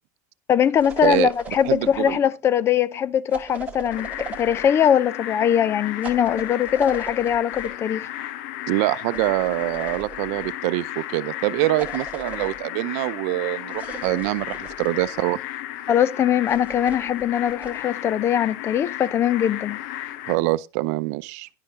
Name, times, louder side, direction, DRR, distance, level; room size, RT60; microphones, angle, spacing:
voice 1, 0.5-8.1 15.9-19.8, left 9 dB, 30° left, 0.6 m, -21 dB
sound 1, 0.8-2.2 3.3-4.7 6.0-7.7 9.1-10.5 11.8-12.6 13.7-15.2 16.5-17.8, right 5 dB, 15° right, 1.8 m, -39 dB
voice 2, 1.0-1.3 1.6-2.2 8.7-15.4 20.2-21.5, right 19 dB, 70° right, 0.6 m, -24 dB
sound 2, 3.9-20.4, left 13 dB, 75° left, 0.9 m, -34 dB
10.5 x 10.0 x 3.7 m
supercardioid pair, 145°, 9 cm